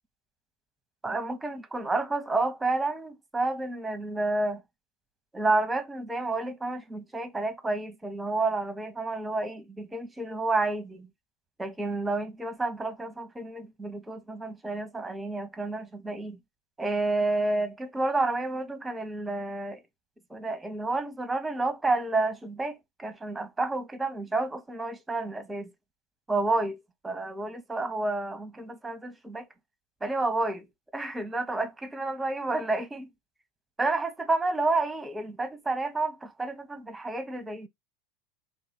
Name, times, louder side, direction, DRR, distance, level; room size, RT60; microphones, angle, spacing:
voice 1, 1.0-4.6 5.3-11.1 11.6-16.4 16.8-19.8 20.3-25.7 26.3-26.8 27.0-29.5 30.0-30.7 30.9-33.1 33.8-37.7, right 2 dB, 10° right, 0.9 m, -30 dB
3.6 x 2.6 x 4.1 m
hypercardioid pair, 85°, 0 cm